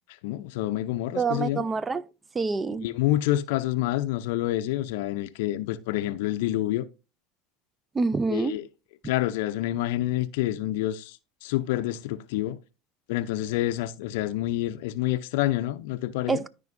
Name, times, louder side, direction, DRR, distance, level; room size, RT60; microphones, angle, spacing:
voice 1, 0.2-1.6 2.8-6.9 8.3-8.6 9.0-12.6 13.1-16.4, left 14 dB, 70° left, 0.5 m, -28 dB
voice 2, 1.2-2.0 2.3-2.9 7.9-8.5 16.3-16.5, right 4 dB, 20° right, 0.4 m, -26 dB
13.5 x 5.0 x 2.6 m
hypercardioid pair, 85°, 0 cm